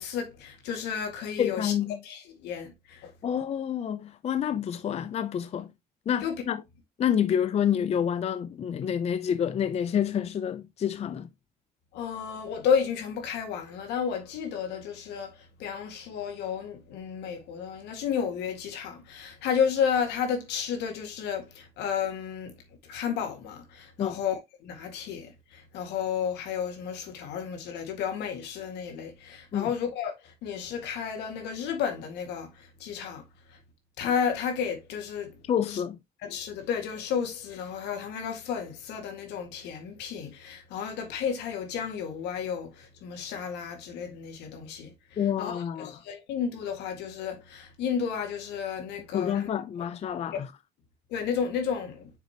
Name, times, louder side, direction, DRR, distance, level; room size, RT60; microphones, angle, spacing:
voice 1, 0.0-1.7 2.0-3.1 6.2-6.4 11.9-22.5 22.9-32.5 32.8-33.2 34.0-35.3 35.7-35.8 36.2-44.9 45.4-49.5 51.1-52.1, left 7 dB, 85° left, 1.9 m, -32 dB
voice 2, 1.4-2.0 3.2-5.7 6.1-6.6 7.0-11.3 24.0-24.2 29.5-29.7 35.5-36.0 45.2-45.9 49.1-50.5, left 9 dB, 40° left, 0.5 m, -28 dB
6.7 x 4.9 x 2.9 m
cardioid pair, 110°, 17 cm